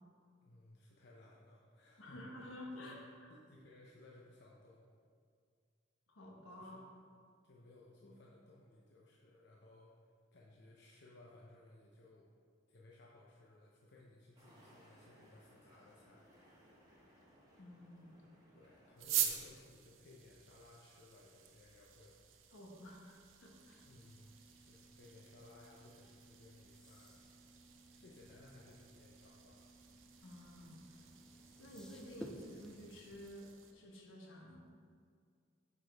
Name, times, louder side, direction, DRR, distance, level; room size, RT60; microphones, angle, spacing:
voice 1, 0.4-3.0 3.3-4.8 6.6-6.8 7.4-12.3 12.7-16.2 18.5-22.1 23.8-24.3 24.6-27.2 28.0-29.6, left 2 dB, 60° left, -3 dB, 0.7 m, -60 dB
voice 2, 2.0-3.3 6.1-6.9 8.0-8.2 17.6-18.2 22.5-23.9 30.2-31.1 31.6-34.7, left 1 dB, 80° left, 0 dB, 1.1 m, -52 dB
sound 1, 14.3-19.5, equal, 20° right, 1.2 m, -65 dB
sound 2, 19.0-33.7, right 10 dB, 75° right, 0.6 m, -46 dB
sound 3, 23.4-33.3, equal, 5° left, 0.4 m, -58 dB
8.0 x 4.9 x 3.4 m, 2.1 s
head